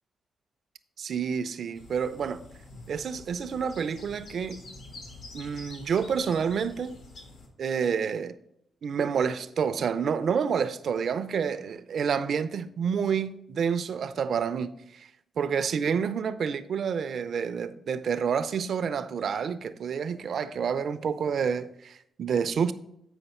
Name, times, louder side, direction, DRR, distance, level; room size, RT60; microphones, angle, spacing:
voice 1, 1.0-2.4 2.9-4.7 5.3-7.0 7.6-8.4 8.8-15.1 15.4-22.7, right 6 dB, 65° right, 0.5 m, -29 dB
sound 1, 1.7-7.5, left 2 dB, 75° left, 1.6 m, -47 dB
8.0 x 5.1 x 4.3 m
cardioid pair, 105°, 0 cm